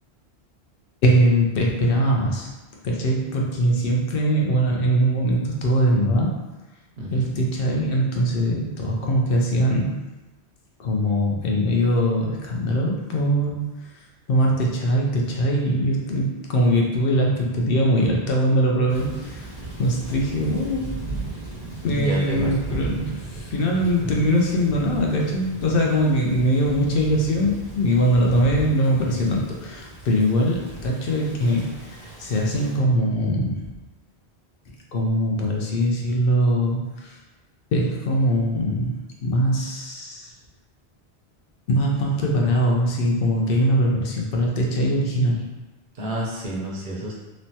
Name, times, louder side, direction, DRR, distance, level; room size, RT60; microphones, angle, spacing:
voice 1, 1.0-2.5 2.8-6.3 7.1-9.9 10.8-13.8 14.3-19.5 19.8-20.9 21.8-33.6 34.7-37.1 37.7-40.3 41.7-45.4, equal, 65° left, -1 dB, 0.7 m, -22 dB
voice 2, 7.0-7.3 21.9-22.5 45.9-47.1, right 1 dB, 55° right, -3 dB, 0.7 m, -29 dB
Thunder / Rain, 18.9-32.8, right 2 dB, 25° left, 1.1 m, -36 dB
3.0 x 2.2 x 2.7 m, 1.1 s
omnidirectional pair, 1.1 m